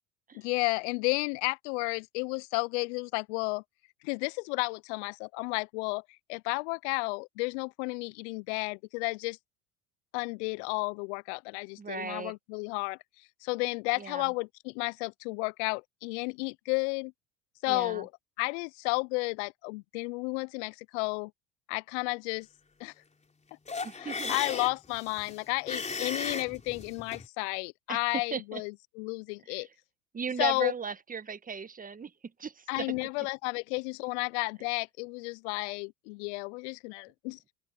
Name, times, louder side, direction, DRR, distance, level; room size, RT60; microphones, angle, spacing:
voice 1, 0.3-3.6 4.0-6.0 6.3-9.4 10.1-13.0 13.4-17.1 17.6-18.1 18.4-21.3 21.7-22.5 22.8-22.9 23.9-29.7 30.4-30.7 32.7-37.4, left 30 dB, 65° left, 0.7 m, -32 dB
voice 2, 11.8-12.3 14.0-14.2 17.7-18.0 23.8-24.3 27.9-28.0 28.3-28.6 29.5-29.6 30.1-32.1 32.4-32.9, right 6 dB, 20° right, 1.7 m, -36 dB
sound 1, 23.7-27.3, left 4 dB, 20° left, 4.2 m, -36 dB
open air
hypercardioid pair, 75°, 37 cm